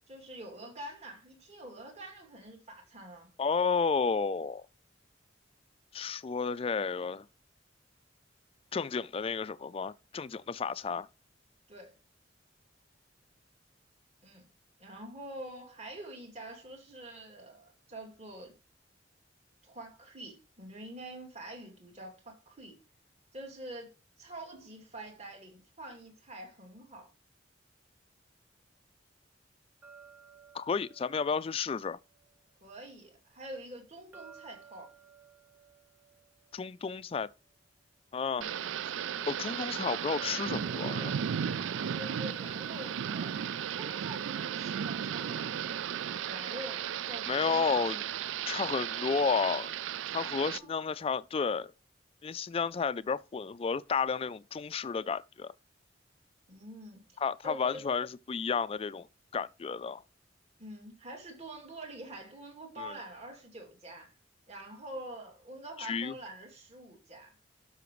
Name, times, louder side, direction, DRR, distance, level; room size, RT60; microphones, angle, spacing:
voice 1, 0.1-3.3 11.7-12.0 14.2-14.5 14.8-18.5 19.6-22.8 23.3-27.1 32.6-34.9 38.4-38.6 41.9-45.8 46.3-47.8 50.3-50.7 56.5-57.2 57.4-57.8 60.6-64.1 64.5-67.3, right 1 dB, 35° right, 2.4 m, -46 dB
voice 2, 3.4-4.6 5.9-7.3 8.7-11.1 30.5-32.0 36.5-37.3 38.1-38.5 39.3-41.1 47.3-48.0 48.5-49.7 50.1-51.7 52.2-55.5 57.2-59.1 59.3-60.0 62.8-62.9 65.8-66.1, left 5 dB, 30° left, 0.3 m, -32 dB
sound 1, 29.8-32.9 34.1-37.6 40.1-43.2, right 6 dB, 10° right, 0.8 m, -57 dB
Thunder / Rain, 38.4-50.6, right 8 dB, 85° right, 0.4 m, -35 dB
12.0 x 5.8 x 3.1 m
head